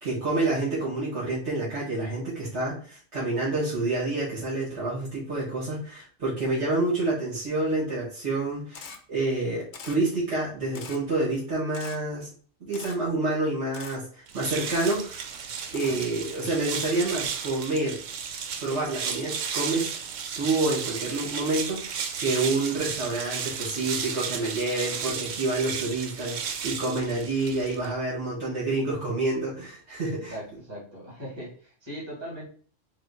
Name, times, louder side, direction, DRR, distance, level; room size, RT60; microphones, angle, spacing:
voice 1, 0.0-12.3 12.7-15.2 15.7-18.0 18.6-19.9 20.3-30.3, right 2 dB, 65° right, -8 dB, 2.1 m, -28 dB
Camera, 8.7-9.0 9.7-10.0 10.7-11.0 11.7-12.0 12.7-13.0 13.7-14.0 14.7-15.0 15.7-16.0 16.7-16.9, left 6 dB, 70° left, 0.9 m, -42 dB
sound 1, 14.3-27.9, right 7 dB, 90° right, 1.0 m, -34 dB
voice 2, 30.3-32.5, equal, 20° right, -6 dB, 1.9 m, -39 dB
4.2 x 2.5 x 4.2 m, 0.43 s
omnidirectional pair, 1.3 m